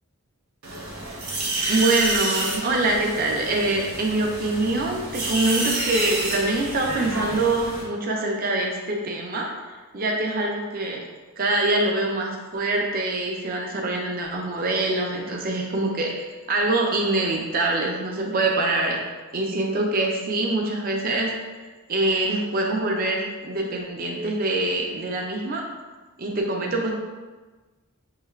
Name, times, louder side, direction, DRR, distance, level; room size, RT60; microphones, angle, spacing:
sound 1, 0.6-7.8, right 2 dB, 85° right, 1.1 m, -29 dB
voice 1, 1.7-9.5 9.9-11.0 11.4-19.0 19.3-21.3 21.9-25.6 26.2-26.9, right 2 dB, 40° right, 0 dB, 0.5 m, -24 dB
6.4 x 3.2 x 2.4 m, 1.3 s
head